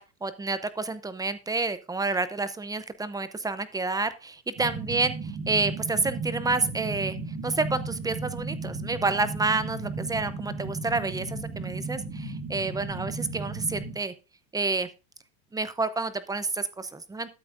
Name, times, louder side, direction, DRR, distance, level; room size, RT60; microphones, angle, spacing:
voice 1, 0.0-5.1 5.5-7.2 7.4-14.1 14.5-14.9 15.5-17.3, right 3 dB, 10° right, 13 dB, 0.5 m, -29 dB
sound 1, 4.6-13.9, right 3 dB, 30° right, 1.9 m, -35 dB
12.5 x 7.7 x 2.5 m, 0.30 s
supercardioid pair, 120°, 49 cm